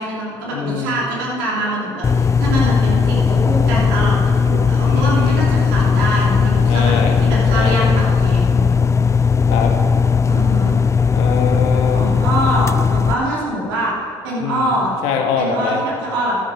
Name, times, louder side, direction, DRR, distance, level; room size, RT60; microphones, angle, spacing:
voice 1, 0.0-8.6 10.3-10.7 11.9-13.9 14.2-14.9 15.4-16.4, right 1 dB, 90° right, -4 dB, 3.3 m, -24 dB
voice 2, 0.5-1.0 4.9-5.5 6.7-7.1 7.5-7.9 9.5-9.7 11.1-12.0 14.4-14.7 15.0-15.8, left 6 dB, 80° left, 2 dB, 1.8 m, -23 dB
sound 1, 2.0-13.1, left 5 dB, 25° left, 0.4 m, -16 dB
12.5 x 11.0 x 5.0 m, 2.4 s
supercardioid pair, 65°, 11 cm